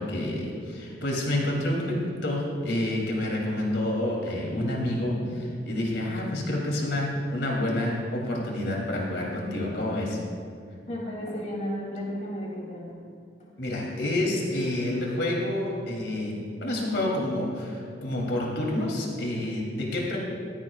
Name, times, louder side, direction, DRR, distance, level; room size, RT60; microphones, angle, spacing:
voice 1, 0.0-10.2 13.6-20.2, left 1 dB, 70° left, -2 dB, 3.1 m, -28 dB
voice 2, 10.8-12.8, equal, 40° left, -3 dB, 3.0 m, -33 dB
16.0 x 15.5 x 2.5 m, 2.3 s
head